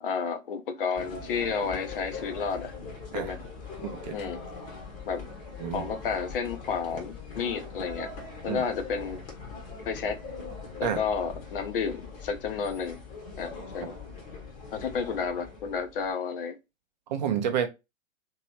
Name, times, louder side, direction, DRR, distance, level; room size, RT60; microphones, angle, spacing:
voice 1, 0.0-2.7 3.1-3.4 4.1-4.4 5.1-5.2 5.7-8.1 8.4-9.2 9.9-10.2 10.8-13.0 13.4-13.9 14.7-16.6, left 6 dB, 45° left, 0.6 m, -31 dB
sound 1, 0.9-16.1, left 4 dB, 20° left, 0.9 m, -41 dB
voice 2, 3.8-4.2 5.6-5.9 8.5-8.6 10.8-11.0 17.1-17.7, right 8 dB, 35° right, 0.5 m, -29 dB
3.0 x 2.7 x 2.9 m
figure-of-eight pair, 115°, 40 cm